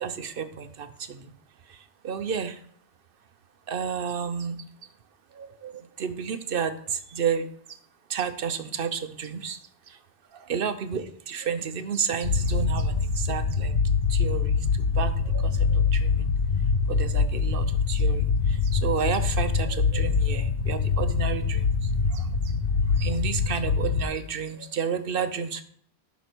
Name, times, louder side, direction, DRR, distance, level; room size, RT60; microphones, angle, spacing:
voice 1, 0.0-1.3 2.0-2.5 3.7-4.6 5.4-5.7 6.0-6.7 7.1-7.5 8.1-9.6 10.5-13.7 14.1-14.5 15.0-16.1 16.9-18.3 18.7-21.6 22.1-22.2 23.0-25.6, right 7 dB, 60° right, 10 dB, 0.9 m, -31 dB
sound 1, 12.2-24.0, left 5 dB, 85° left, 1.1 m, -24 dB
11.0 x 4.1 x 6.1 m, 0.62 s
omnidirectional pair, 1.1 m